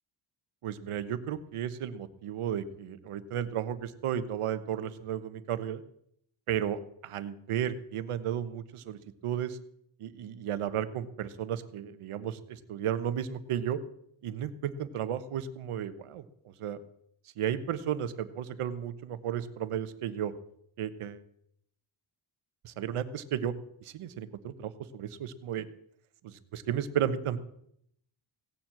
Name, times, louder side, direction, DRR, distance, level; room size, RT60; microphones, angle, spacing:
voice 1, 0.6-5.8 6.5-9.6 10.0-13.8 14.2-16.8 17.4-20.3 20.8-21.2 22.6-23.5 23.8-25.7 26.2-27.4, right 9 dB, 90° right, 12 dB, 1.2 m, -34 dB
17.0 x 7.4 x 7.7 m, 0.72 s
wide cardioid pair, 145°, 50 cm